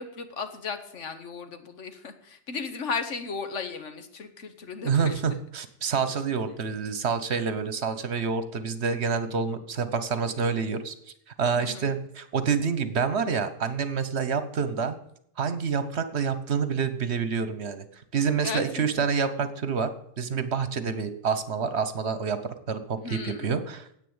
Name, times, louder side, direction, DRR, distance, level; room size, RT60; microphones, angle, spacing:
voice 1, 0.0-5.2 11.5-11.9 18.4-18.9 23.0-23.5, left 5 dB, 80° left, 8 dB, 1.5 m, -35 dB
voice 2, 4.8-10.9 11.4-14.9 15.4-17.8 18.1-19.9 20.2-22.4 22.7-23.9, right 6 dB, 65° right, 11 dB, 1.3 m, -27 dB
9.8 x 8.3 x 8.8 m, 0.72 s
omnidirectional pair, 1.2 m